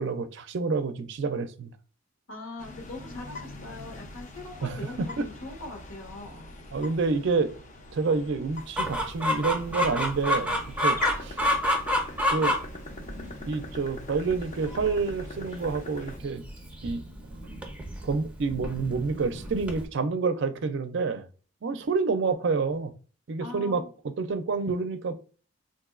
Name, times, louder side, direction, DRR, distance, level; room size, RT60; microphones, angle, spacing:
voice 1, 0.0-1.7 4.6-5.2 6.7-7.5 7.9-11.4 12.3-12.5 13.5-16.4 16.8-17.0 18.0-21.3 21.6-22.9 23.3-23.8 24.2-25.1, right 4 dB, 60° right, 0.4 m, -28 dB
voice 2, 2.3-6.5 23.4-23.9, left 2 dB, 70° left, 1.2 m, -41 dB
sound 1, 2.6-16.2, left 2 dB, 35° left, 0.6 m, -41 dB
Chicken rooster, 8.8-19.9, left 1 dB, 5° right, 0.6 m, -30 dB
3.9 x 2.6 x 2.4 m
head